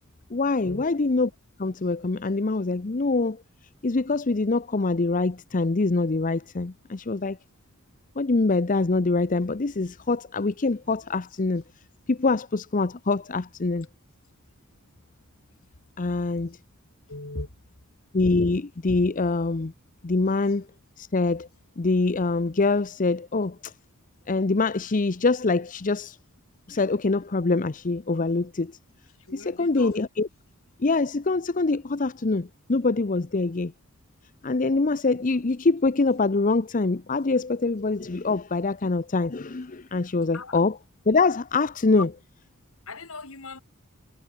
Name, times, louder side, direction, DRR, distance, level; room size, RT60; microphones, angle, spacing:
voice 1, 0.3-1.3 1.6-3.4 3.8-7.4 8.2-11.6 12.1-13.9 16.0-16.6 18.1-19.7 20.0-20.7 21.0-21.5 21.8-23.7 24.3-26.2 26.7-28.7 29.3-30.3 30.8-33.7 34.4-40.8 41.1-42.1, left 3 dB, 35° left, 0.7 m, -24 dB
voice 2, 17.1-17.5 29.3-29.9 40.3-40.6 42.0-42.1 42.9-43.6, left 3 dB, 65° left, 3.3 m, -37 dB
head